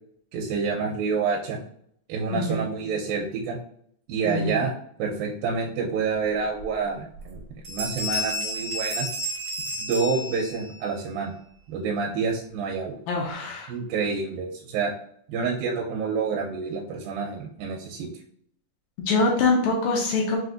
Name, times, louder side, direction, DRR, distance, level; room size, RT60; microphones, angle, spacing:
voice 1, 0.3-1.6 2.1-3.6 4.1-4.7 5.0-7.4 7.7-9.1 9.8-11.3 11.7-13.0 13.7-14.9 15.3-18.1, right 5 dB, 85° right, -2 dB, 2.3 m, -28 dB
voice 2, 2.3-2.6 4.2-4.6 13.1-13.7 19.1-20.4, left 3 dB, 80° left, -2 dB, 2.4 m, -24 dB
Bell, 6.6-6.7 7.1-7.4 7.6-10.8, equal, 65° right, 0.9 m, -31 dB
6.0 x 2.5 x 2.5 m, 0.66 s
omnidirectional pair, 4.1 m